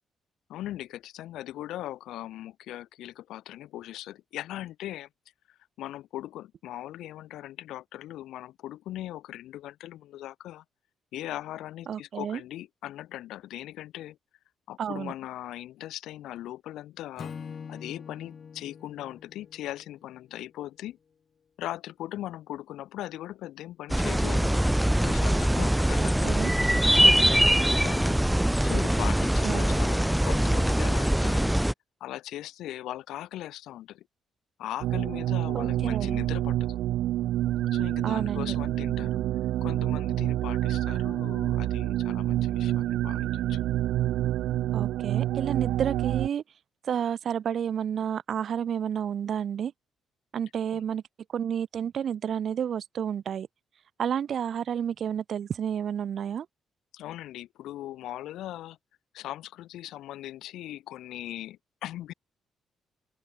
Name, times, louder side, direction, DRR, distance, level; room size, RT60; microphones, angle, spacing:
voice 1, 0.5-5.1 5.5-10.6 11.1-14.2 14.7-17.3 17.7-21.0 21.6-26.3 27.0-31.5 32.0-34.1 34.6-36.8 37.7-39.2 39.6-43.6 50.7-50.8 56.9-58.8 59.1-62.1, left 14 dB, 85° left, 4.3 m, -39 dB
voice 2, 11.9-12.4 14.8-15.1 26.0-26.5 29.4-29.6 35.5-36.2 38.0-38.6 44.7-46.4 46.9-49.7 50.3-51.0 51.3-53.5 54.0-56.5, right 8 dB, 60° right, 3.7 m, -30 dB
Acoustic guitar / Strum, 17.2-20.5, left 6 dB, 45° left, 2.3 m, -44 dB
sound 1, 23.9-31.7, right 1 dB, 5° right, 0.5 m, -23 dB
sound 2, 34.8-46.3, right 14 dB, 85° right, 0.9 m, -28 dB
open air
cardioid pair, 90°, 0 cm